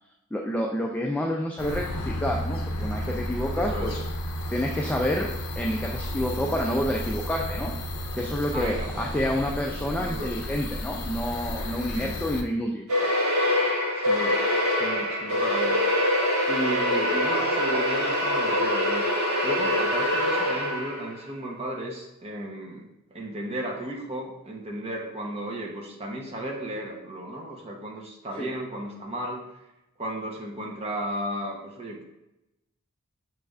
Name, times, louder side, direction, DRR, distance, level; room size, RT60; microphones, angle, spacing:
voice 1, 0.3-4.0 4.5-5.3 5.6-7.7 8.1-12.9 28.4-28.5, equal, 5° left, -1 dB, 0.3 m, -28 dB
sound 1, 1.6-12.4, left 1 dB, 75° left, 0.5 m, -32 dB
voice 2, 3.5-4.0 8.5-9.1 10.0-10.3 11.9-12.2 14.0-15.9 16.5-19.0 19.4-29.4 30.0-32.0, right 1 dB, 30° right, -1 dB, 0.8 m, -34 dB
sound 2, 12.9-21.2, left 1 dB, 85° right, 1.6 m, -24 dB
6.5 x 3.2 x 2.4 m, 0.92 s
head